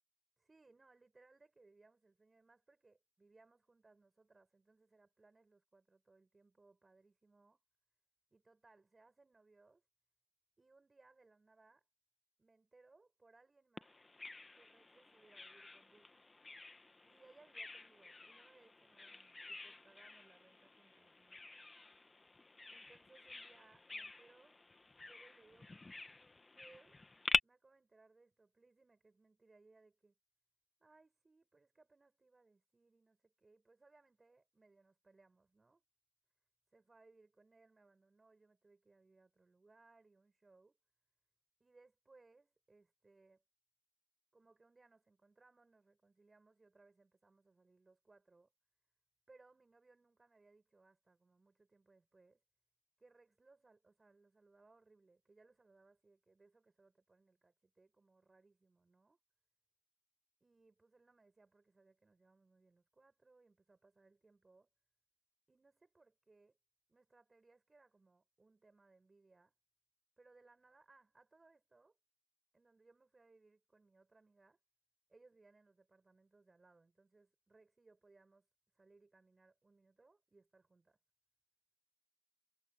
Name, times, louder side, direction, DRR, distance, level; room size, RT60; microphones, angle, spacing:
voice 1, 0.4-7.6 8.3-9.8 10.6-11.9 12.4-14.0 14.5-16.1 17.1-21.5 22.7-24.6 25.0-26.0 26.5-27.0 27.4-30.2 30.8-35.8 36.7-40.8 41.6-43.4 44.3-48.5 49.3-52.4 53.0-59.2 60.4-64.7 65.5-66.6 66.9-69.5 70.2-72.0 72.5-74.6 75.1-78.5 78.7-81.0, right 3 dB, 25° right, 6.6 m, -68 dB
Bird vocalization bird call bird song, 13.8-27.4, left 3 dB, 20° left, 1.5 m, -45 dB
cardioid pair, 90°, 0 cm